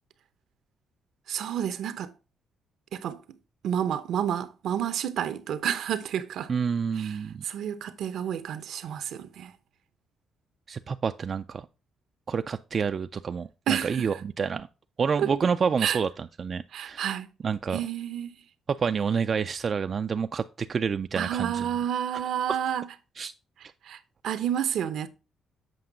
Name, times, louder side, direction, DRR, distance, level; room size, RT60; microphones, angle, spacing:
voice 1, 1.3-2.1 2.9-3.2 3.6-6.5 7.0-7.2 7.4-9.5 13.7-14.1 15.2-15.3 15.8-16.0 16.7-17.3 17.7-18.4 21.1-22.9 23.8-24.0 24.2-25.1, right 9 dB, 75° right, 0.7 m, -30 dB
voice 2, 6.5-7.4 10.7-11.7 12.3-14.7 15.0-17.1 17.4-17.8 18.7-21.7 23.2-23.3, right 6 dB, 45° right, 0.3 m, -28 dB
7.7 x 5.3 x 3.8 m
cardioid pair, 90°, 0 cm